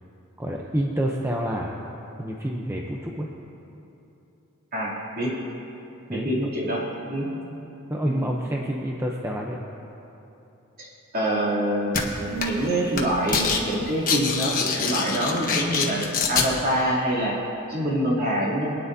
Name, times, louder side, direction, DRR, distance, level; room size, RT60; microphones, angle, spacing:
voice 1, 0.4-1.8 2.2-3.3 6.1-6.3 7.9-9.7, equal, 10° right, -1 dB, 0.6 m, -28 dB
voice 2, 4.7-5.3 6.1-7.3 8.0-8.3 10.8-10.9 11.1-17.4 17.7-18.7, right 1 dB, 45° right, -6 dB, 2.9 m, -25 dB
sound 1, 11.9-12.0 12.4-12.7 12.9-13.6 13.9-16.5, left 5 dB, 40° left, 1.2 m, -24 dB
24.0 x 9.7 x 2.7 m, 3.0 s
head